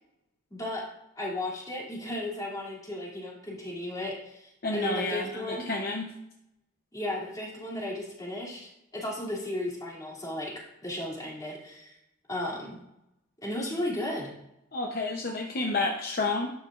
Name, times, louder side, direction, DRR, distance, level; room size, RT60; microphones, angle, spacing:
voice 1, 0.5-0.9 1.2-5.7 6.9-12.0 12.3-12.8 13.4-14.3, left 1 dB, 15° left, -4 dB, 2.6 m, -35 dB
voice 2, 4.6-6.1 14.7-16.5, left 2 dB, 45° left, 1 dB, 0.8 m, -30 dB
12.0 x 9.0 x 2.5 m, 0.84 s
head